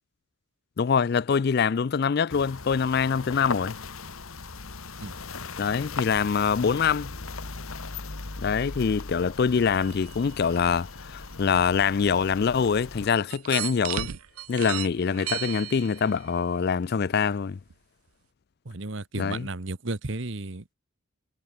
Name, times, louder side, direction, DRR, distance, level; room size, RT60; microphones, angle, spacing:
voice 1, 0.8-3.8 5.6-7.1 8.4-14.1 14.5-17.6 19.2-19.5, left 6 dB, 45° left, 0.4 m, -24 dB
sound 1, 2.3-13.1, left 4 dB, 80° left, 1.7 m, -38 dB
sound 2, 9.7-10.3 11.8-11.9 13.3-16.2 17.1-17.3 17.7-17.8, right 12 dB, 90° right, 0.7 m, -35 dB
voice 2, 18.6-20.7, right 2 dB, 60° right, 1.2 m, -34 dB
head